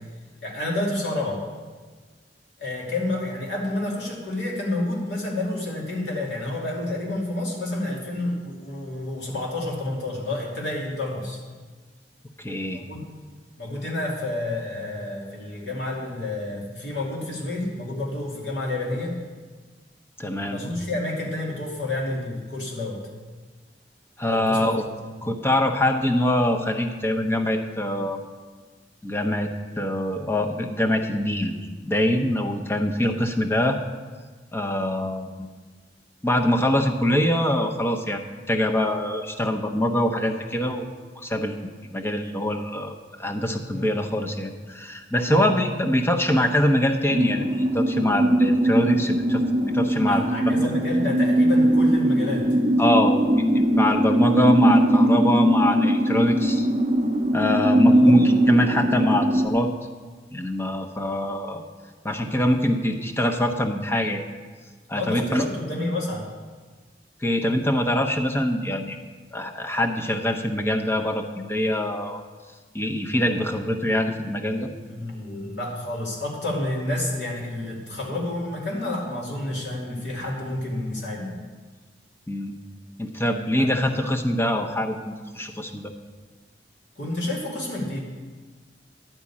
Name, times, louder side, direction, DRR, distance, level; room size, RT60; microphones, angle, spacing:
voice 1, 0.4-1.4 2.6-11.4 12.7-13.0 13.6-19.2 20.5-23.0 24.3-24.7 25.2-25.3 43.7-43.9 45.3-45.5 50.1-52.6 58.0-58.2 64.9-66.3 74.9-81.4 83.5-83.7 87.0-88.0, left 2 dB, 75° left, -3 dB, 2.7 m, -29 dB
voice 2, 12.4-12.8 20.2-20.6 24.2-24.8 25.2-28.2 29.0-31.6 31.8-33.8 34.5-35.5 36.2-40.9 41.2-50.7 52.8-56.7 57.3-59.7 60.3-61.6 62.0-64.3 64.9-65.4 67.2-69.0 69.3-72.2 72.7-74.7 82.3-82.5 83.0-85.9, left 1 dB, 15° left, 3 dB, 0.8 m, -24 dB
sound 1, 47.1-59.5, right 1 dB, 35° right, 0.7 m, -20 dB
11.0 x 5.2 x 8.5 m, 1.4 s
head